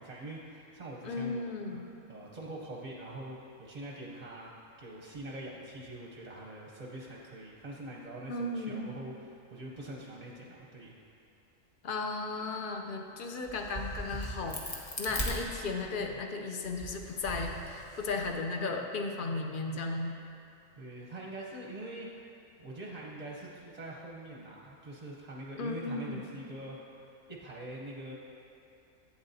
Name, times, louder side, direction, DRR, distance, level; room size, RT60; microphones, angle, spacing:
voice 1, 0.0-1.4 1.7-1.8 2.1-4.5 4.8-11.0 20.8-22.1 22.6-26.8 27.3-28.1, right 1 dB, 40° right, -3 dB, 0.7 m, -44 dB
voice 2, 1.0-1.8 8.3-8.8 11.8-20.2 25.6-26.2, left 3 dB, 55° left, 2 dB, 0.6 m, -35 dB
Crack, 13.5-16.1 16.6-18.3, equal, 35° left, 1.0 m, -39 dB
11.5 x 8.4 x 2.7 m, 2.6 s
omnidirectional pair, 1.4 m